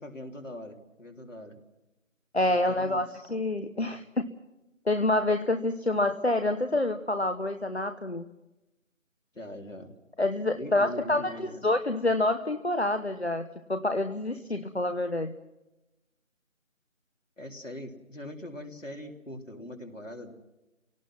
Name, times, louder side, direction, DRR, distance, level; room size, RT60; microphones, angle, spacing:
voice 1, 0.0-1.6 2.5-3.3 3.7-4.0 9.3-9.9 10.5-11.7 17.4-20.3, left 1 dB, 70° left, 3 dB, 3.5 m, -42 dB
voice 2, 2.3-4.2 4.9-8.2 10.2-15.3, left 2 dB, 55° left, 8 dB, 1.0 m, -27 dB
29.5 x 18.0 x 6.0 m, 0.97 s
figure-of-eight pair, 175°, 39 cm